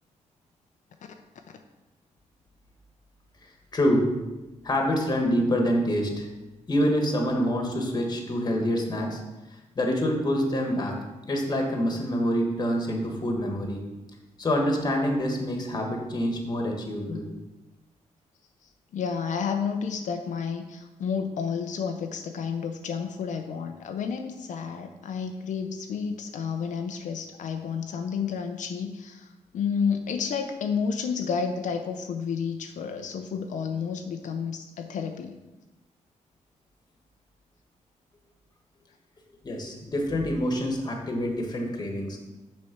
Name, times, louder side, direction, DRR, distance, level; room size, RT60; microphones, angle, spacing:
voice 1, 3.7-4.1 4.6-6.3 6.7-9.2 9.7-11.0 11.3-13.9 14.4-17.3 39.4-42.2, equal, 30° left, 2 dB, 1.4 m, -26 dB
voice 2, 18.6-35.3, left 6 dB, 75° left, 5 dB, 0.6 m, -31 dB
6.3 x 4.3 x 5.9 m, 1.1 s
cardioid pair, 125°, 13 cm